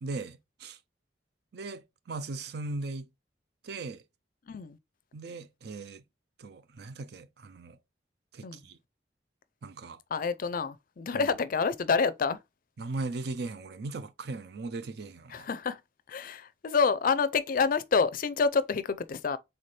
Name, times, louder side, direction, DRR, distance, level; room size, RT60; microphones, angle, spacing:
voice 1, 0.0-0.8 1.5-3.1 3.6-4.0 5.1-6.0 6.4-7.8 8.3-8.8 9.6-10.0 11.1-11.2 12.8-15.5, right 3 dB, 60° right, 0.5 m, -38 dB
voice 2, 4.5-4.8 8.4-8.6 10.1-12.4 15.3-15.8 16.1-19.4, left 5 dB, 50° left, 0.4 m, -28 dB
4.2 x 3.7 x 3.2 m
head